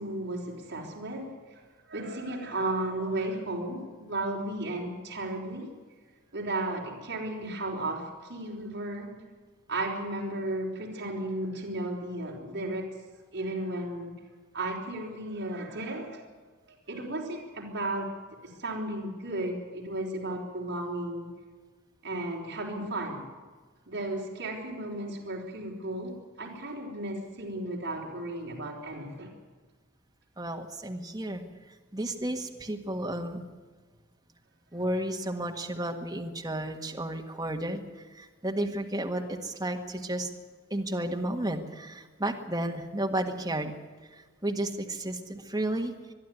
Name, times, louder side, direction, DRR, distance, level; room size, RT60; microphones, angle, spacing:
voice 1, 0.0-5.7 6.3-9.1 9.7-12.9 13.3-14.1 14.5-16.2 16.7-18.1 18.4-21.3 22.0-23.2 23.9-29.3, right 1 dB, 55° right, -3 dB, 4.4 m, -34 dB
voice 2, 30.4-31.4 31.9-33.4 34.7-37.8 38.1-40.3 40.7-43.7 44.1-45.9, right 1 dB, 15° right, 2 dB, 1.7 m, -32 dB
23.0 x 12.0 x 9.5 m, 1.4 s
head